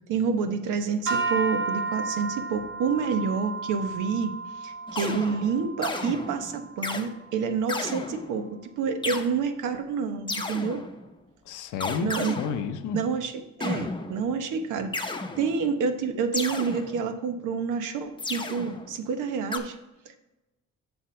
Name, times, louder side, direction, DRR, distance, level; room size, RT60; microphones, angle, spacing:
voice 1, 0.1-4.3 4.6-10.8 12.0-12.4 12.9-19.8 20.1-20.2, right 5 dB, 85° right, 8 dB, 0.9 m, -28 dB
sound 1, 1.1-7.4, right 4 dB, 40° right, 2.0 m, -33 dB
sound 2, 4.9-7.1 7.7-8.5 9.0-9.3 10.3-11.1 11.8-13.0 13.6-14.4 14.9-15.8 16.3-17.3 18.2-19.0 19.5-19.6, left 3 dB, 15° left, 0.7 m, -33 dB
voice 2, 11.5-13.0, left 7 dB, 90° left, 10 dB, 0.7 m, -31 dB
8.0 x 6.0 x 3.2 m, 1.0 s
cardioid pair, 90°, 30 cm